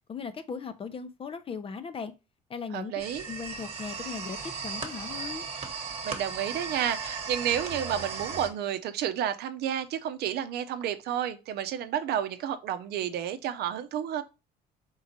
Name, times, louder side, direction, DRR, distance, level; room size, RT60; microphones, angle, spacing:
voice 1, 0.1-2.1 2.5-2.9 3.3-5.4, left 5 dB, 35° left, 0.6 m, -38 dB
voice 2, 2.7-3.3 6.0-14.2, right 10 dB, 75° right, 0.7 m, -31 dB
sound 1, 3.0-8.5, right 5 dB, 40° right, 1.2 m, -36 dB
4.4 x 3.7 x 2.8 m
cardioid pair, 110°, 17 cm